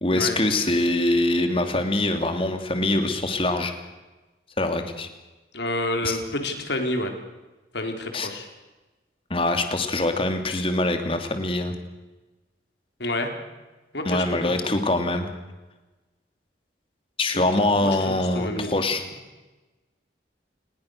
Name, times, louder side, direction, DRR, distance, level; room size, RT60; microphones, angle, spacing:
voice 1, 0.0-3.7 4.6-5.1 6.0-6.2 8.1-8.3 9.3-11.7 14.0-15.3 17.2-19.0, left 2 dB, 30° left, 6 dB, 2.6 m, -24 dB
voice 2, 5.5-7.1 7.7-8.5 13.0-13.3 13.9-14.2 14.6-14.8 17.3-17.4 17.8-18.8, left 1 dB, 65° left, 4 dB, 4.0 m, -29 dB
29.0 x 20.5 x 6.6 m, 1.1 s
head